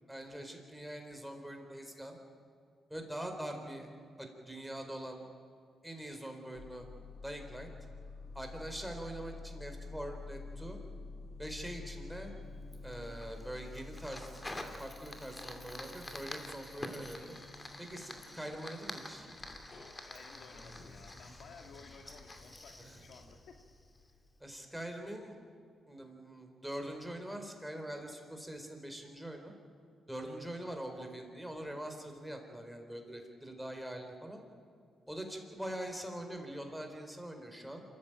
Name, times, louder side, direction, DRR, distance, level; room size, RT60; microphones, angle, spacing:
voice 1, 0.1-2.2 2.9-3.9 4.2-5.2 5.8-6.9 7.2-7.7 8.3-10.8 11.4-12.3 12.8-17.4 17.8-19.3 22.8-23.0 24.4-25.4 25.9-29.5 30.1-34.4 35.1-37.8, right 1 dB, 5° right, 4 dB, 4.4 m, -43 dB
sound 1, 6.6-24.6, left 3 dB, 55° left, 4.1 m, -50 dB
Fire, 12.7-24.1, left 1 dB, 20° left, 2.6 m, -48 dB
voice 2, 19.9-23.6 30.3-30.4, left 5 dB, 75° left, 5 dB, 1.8 m, -56 dB
26.5 x 14.5 x 9.0 m, 2.3 s
cardioid pair, 70°, 0 cm